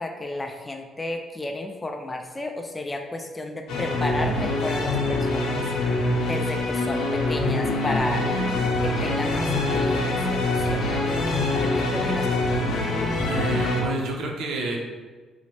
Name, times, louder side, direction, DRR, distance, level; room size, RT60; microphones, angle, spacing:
voice 1, 0.0-5.7 6.2-8.3 8.8-11.0 11.6-12.5, left 2 dB, 20° left, 4 dB, 0.4 m, -32 dB
sound 1, 3.7-13.8, left 2 dB, 85° left, 0.6 m, -24 dB
voice 2, 13.2-14.8, right 3 dB, 80° right, 1 dB, 0.6 m, -29 dB
3.0 x 2.1 x 4.1 m, 1.4 s
cardioid pair, 90°, 0 cm